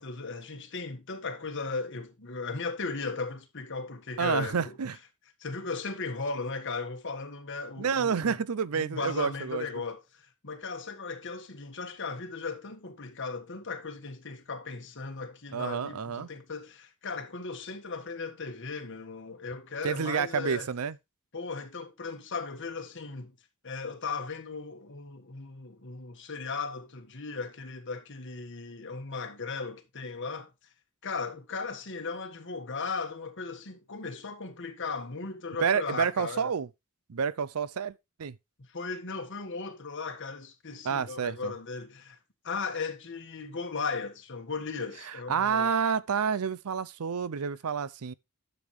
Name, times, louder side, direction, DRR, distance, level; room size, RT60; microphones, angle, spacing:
voice 1, 0.0-4.8 5.4-8.4 8.7-20.7 21.3-23.3 23.6-30.5 31.0-36.5 38.7-42.2 42.4-45.8, left 4 dB, 55° left, 1.5 m, -37 dB
voice 2, 4.2-5.0 7.8-9.7 15.5-16.3 19.8-20.9 35.6-36.7 37.1-37.9 38.2-38.4 40.8-41.5 45.3-48.1, right 6 dB, 80° right, 0.5 m, -29 dB
10.5 x 7.0 x 3.2 m
head